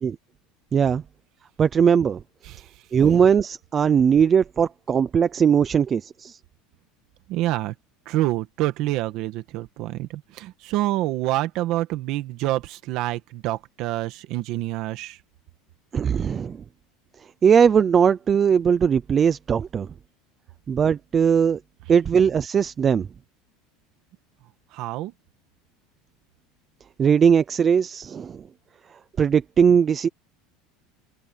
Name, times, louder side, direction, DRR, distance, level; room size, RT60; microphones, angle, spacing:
voice 1, 0.7-1.0 1.6-2.2 2.9-6.4 15.9-16.6 17.4-19.9 20.7-21.6 21.9-23.1 27.0-28.4 29.2-30.1, right 7 dB, 20° right, 0.6 m, -19 dB
voice 2, 2.4-2.8 7.3-7.7 8.0-15.2 24.7-25.1, right 16 dB, 40° right, 1.7 m, -27 dB
cardioid pair, 180°, 0 cm